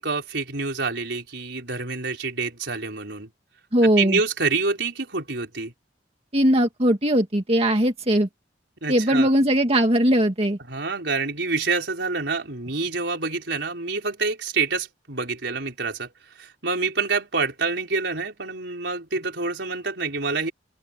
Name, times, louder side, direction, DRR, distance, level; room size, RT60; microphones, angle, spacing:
voice 1, 0.0-3.3 3.8-5.7 8.8-9.3 10.7-16.1 16.4-20.5, right 4 dB, 70° right, 5.2 m, -27 dB
voice 2, 3.7-4.2 6.3-8.3 8.9-10.6, right 1 dB, 35° right, 2.0 m, -19 dB
open air
head